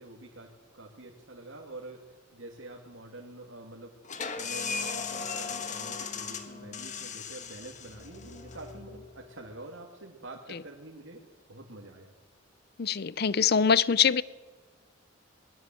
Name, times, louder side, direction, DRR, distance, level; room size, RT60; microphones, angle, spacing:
voice 1, 0.0-2.0 2.3-3.9 4.3-11.2 11.5-12.1, right 2 dB, 75° right, -1 dB, 2.6 m, -46 dB
sound 1, 4.0-9.5, left 5 dB, 40° left, 1.6 m, -37 dB
voice 2, 12.8-14.2, left 6 dB, 55° left, 19 dB, 0.6 m, -23 dB
21.0 x 20.5 x 7.7 m, 1.4 s
head